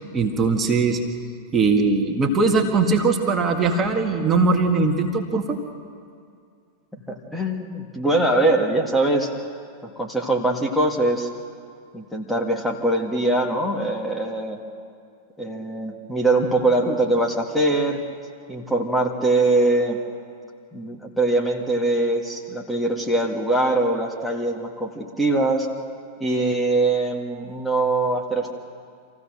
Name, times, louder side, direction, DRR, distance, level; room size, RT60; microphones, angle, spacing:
voice 1, 0.1-1.0 1.5-5.4, right 4 dB, 25° right, 2 dB, 2.0 m, -20 dB
voice 2, 7.1-9.3 9.8-11.3 11.9-14.6 15.4-18.0 18.5-20.0 20.7-25.7 26.2-28.5, right 2 dB, ahead, -1 dB, 2.0 m, -22 dB
27.0 x 15.5 x 6.6 m, 2.3 s
figure-of-eight pair, 90°, 0 cm